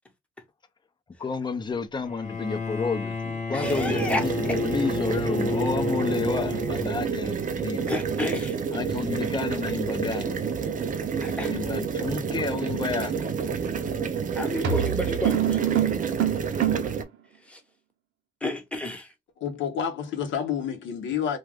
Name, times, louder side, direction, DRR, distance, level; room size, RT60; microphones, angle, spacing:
voice 1, 1.2-8.0 8.7-10.6 11.3-13.3, left 4 dB, 20° left, 0.5 m, -31 dB
Bowed string instrument, 2.0-7.3, left 3 dB, 35° left, 0.9 m, -31 dB
voice 2, 3.5-4.2 7.9-8.6 11.2-11.5 14.3-15.6 17.5-17.6 18.4-19.1, left 1 dB, 5° left, 0.9 m, -30 dB
sound 1, 3.6-17.0, right 6 dB, 40° right, 0.5 m, -29 dB
sound 2, 13.7-14.0 14.6-17.0, right 11 dB, 75° right, 0.7 m, -25 dB
voice 3, 19.4-21.4, left 8 dB, 70° left, 0.8 m, -29 dB
2.4 x 2.3 x 3.3 m
cardioid pair, 90°, 20 cm